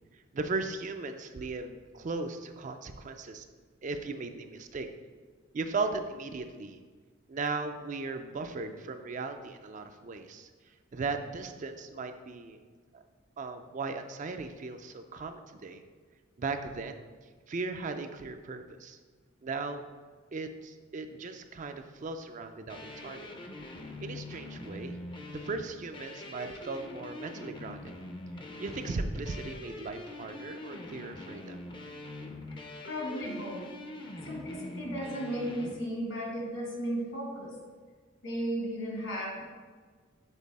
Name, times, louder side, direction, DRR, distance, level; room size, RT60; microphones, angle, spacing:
voice 1, 0.1-3.4 3.8-4.9 5.5-6.8 7.3-10.5 10.9-12.6 13.4-15.8 16.4-17.0 17.5-19.0 19.4-19.9 20.3-23.3 24.0-25.0 25.3-28.0 28.6-31.6, right 3 dB, 40° right, 7 dB, 0.4 m, -37 dB
sound 1, 22.7-35.8, left 2 dB, 25° left, 0.5 m, -44 dB
voice 2, 32.5-33.6 34.2-37.5 38.2-39.4, equal, 70° left, -2 dB, 2.0 m, -35 dB
7.3 x 4.0 x 4.1 m, 1.5 s
head